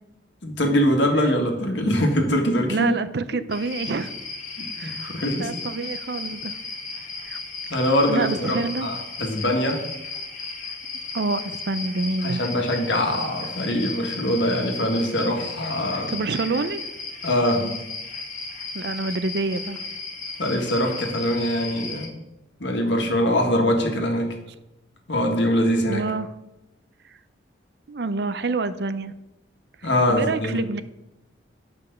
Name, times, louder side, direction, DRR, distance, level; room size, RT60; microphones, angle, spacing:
voice 1, 0.4-2.9 4.6-5.5 7.7-9.8 12.2-16.2 17.2-17.8 20.4-22.1 22.6-24.3 25.1-26.0 29.8-30.6, equal, 70° left, 2 dB, 1.7 m, -23 dB
voice 2, 2.7-4.1 4.8-5.1 5.4-6.6 7.2-7.4 8.1-8.9 11.1-12.4 16.1-16.9 18.7-19.8 25.9-26.3 27.9-29.1 30.1-30.8, right 3 dB, 55° right, 12 dB, 0.5 m, -27 dB
sound 1, 3.5-22.1, left 4 dB, 40° left, 1.5 m, -35 dB
9.2 x 5.3 x 6.7 m, 0.96 s
head